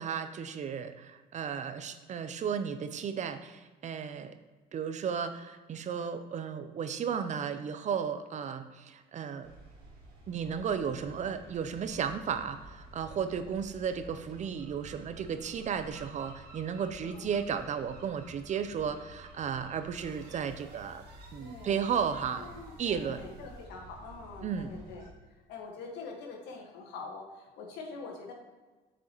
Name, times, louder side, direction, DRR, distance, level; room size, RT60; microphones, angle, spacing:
voice 1, 0.0-4.3 4.7-9.5 10.3-21.0 21.3-22.5 22.8-23.2 24.4-24.7, right 7 dB, 45° right, 10 dB, 0.6 m, -34 dB
sound 1, 9.4-25.1, right 1 dB, 70° right, 1.8 m, -52 dB
voice 2, 13.3-13.6 17.0-17.3 21.4-21.9 22.2-28.3, left 4 dB, 85° left, 0 dB, 1.6 m, -45 dB
sound 2, 19.9-23.7, right 4 dB, 85° right, 1.2 m, -58 dB
7.8 x 6.2 x 3.0 m, 1.3 s
cardioid pair, 110°, 17 cm